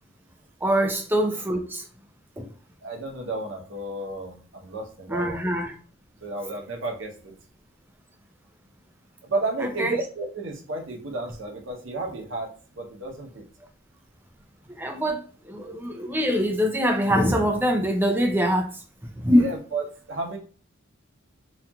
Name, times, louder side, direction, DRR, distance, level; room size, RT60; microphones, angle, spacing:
voice 1, 0.6-1.8 2.4-2.5 5.1-5.8 9.8-10.0 14.7-18.8 19.1-19.5, equal, 10° right, 0.3 m, -23 dB
voice 2, 2.8-5.4 6.2-7.3 9.2-12.5 12.7-13.4 19.3-20.4, right 2 dB, 60° right, 0.7 m, -32 dB
2.8 x 2.4 x 2.2 m
head